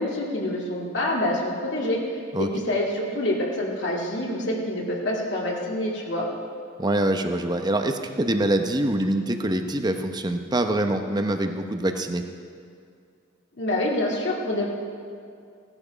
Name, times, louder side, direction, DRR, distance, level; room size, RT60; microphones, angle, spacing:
voice 1, 0.0-6.3 13.6-14.7, left 1 dB, 65° left, -2 dB, 2.0 m, -26 dB
voice 2, 6.8-12.2, right 1 dB, 20° right, 6 dB, 0.8 m, -24 dB
16.5 x 11.0 x 5.1 m, 2.3 s
head